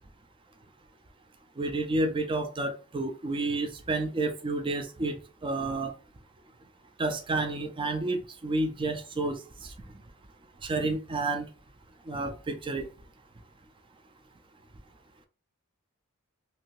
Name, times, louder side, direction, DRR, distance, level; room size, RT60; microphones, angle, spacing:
voice 1, 1.6-5.2 5.4-5.9 7.0-9.7 10.6-11.5 12.1-12.9, right 2 dB, 25° right, 0.4 m, -30 dB
2.7 x 2.6 x 3.0 m
head